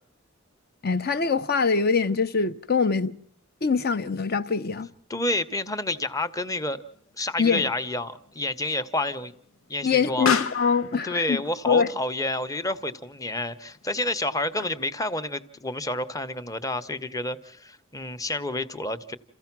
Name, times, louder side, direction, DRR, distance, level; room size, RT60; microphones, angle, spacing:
voice 1, 0.8-3.2 3.6-4.9 7.4-7.6 9.8-11.9, left 5 dB, 50° left, 0.8 m, -24 dB
voice 2, 5.1-6.8 7.2-9.3 9.7-10.3 11.0-19.2, left 2 dB, 15° left, 0.8 m, -29 dB
Explosion, 6.1-15.1, left 6 dB, 85° left, 0.9 m, -36 dB
28.5 x 15.5 x 6.0 m
head